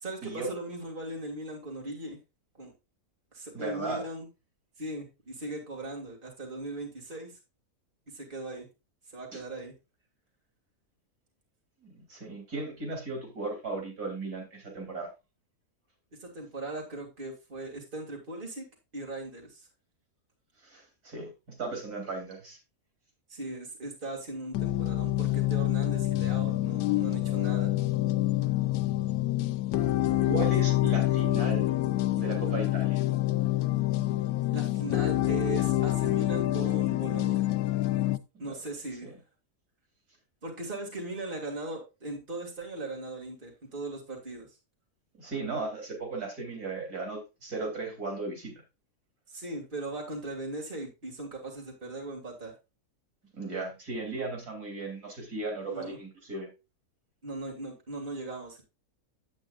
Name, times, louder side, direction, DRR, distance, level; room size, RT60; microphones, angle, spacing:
voice 1, 0.0-2.2 2.5-2.7 3.3-4.3 4.8-7.3 8.1-8.7 9.1-9.7 16.2-18.7 18.9-19.7 23.3-27.7 34.5-37.4 37.9-38.1 38.4-39.1 40.4-44.5 49.3-52.5 55.7-56.0 57.2-58.6, right 2 dB, 35° right, 0 dB, 2.6 m, -39 dB
voice 2, 3.5-4.0 9.3-9.4 11.8-15.1 20.6-21.3 21.6-22.6 30.2-31.7 32.2-33.0 38.3-38.5 39.0-39.1 45.2-48.5 53.4-56.5, right 3 dB, 85° right, 1 dB, 3.6 m, -36 dB
sound 1, 24.5-38.2, left 15 dB, 85° left, 1.1 m, -27 dB
9.7 x 8.3 x 2.4 m, 0.26 s
omnidirectional pair, 1.6 m